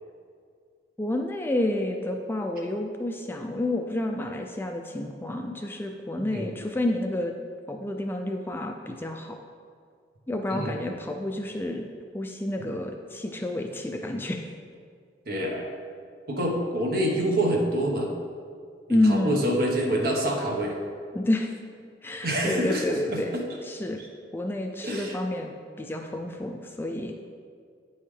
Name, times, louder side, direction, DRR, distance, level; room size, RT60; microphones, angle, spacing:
voice 1, 1.0-7.3 7.7-9.4 10.3-11.9 12.1-14.5 18.9-19.4 21.1-21.5 22.0-23.3 23.6-24.0 24.3-27.3, left 1 dB, 10° left, 3 dB, 0.3 m, -29 dB
voice 2, 15.3-15.6 16.3-18.1 18.9-20.8 22.2-22.8 23.1-23.2 24.8-25.1, right 1 dB, 55° right, 0 dB, 1.1 m, -26 dB
8.9 x 5.5 x 3.3 m, 2.2 s
head